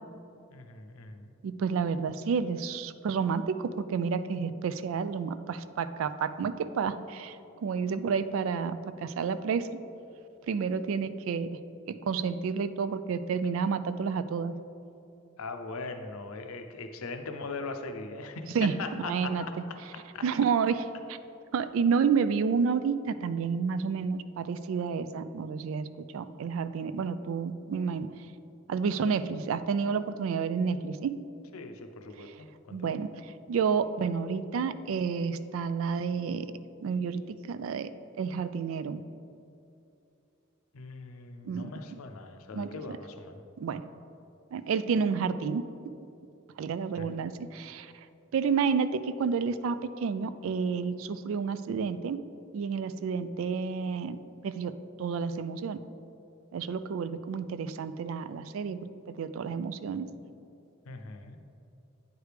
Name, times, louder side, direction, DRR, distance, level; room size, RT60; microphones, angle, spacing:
voice 1, 0.5-1.3 15.4-20.2 31.5-33.0 40.7-43.4 47.0-47.1 60.9-61.4, left 3 dB, 85° left, 7 dB, 0.6 m, -40 dB
voice 2, 1.4-7.4 7.6-9.7 10.5-11.5 12.0-14.5 18.5-19.5 20.2-21.2 21.5-25.9 26.1-28.1 28.7-31.1 32.3-32.4 32.7-33.1 33.5-36.5 36.8-37.2 37.5-37.9 38.2-39.0 41.4-41.7 42.5-43.0 43.6-43.8 44.5-45.6 46.6-47.9 48.3-52.2 52.5-54.2 54.4-55.8 56.5-60.1, right 6 dB, 70° right, 13 dB, 0.3 m, -30 dB
9.3 x 4.7 x 3.3 m, 2.7 s
head